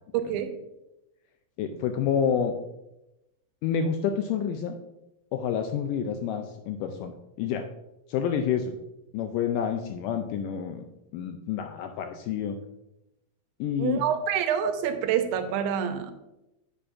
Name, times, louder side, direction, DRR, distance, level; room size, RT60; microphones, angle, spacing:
voice 1, 0.1-0.5 13.8-16.1, right 8 dB, 85° right, 8 dB, 2.5 m, -27 dB
voice 2, 1.6-2.5 3.6-4.8 5.3-7.7 8.1-8.8 9.1-10.8 11.1-12.6 13.6-14.0, left 7 dB, 80° left, 6 dB, 1.9 m, -28 dB
9.9 x 7.0 x 2.5 m, 0.92 s
omnidirectional pair, 4.2 m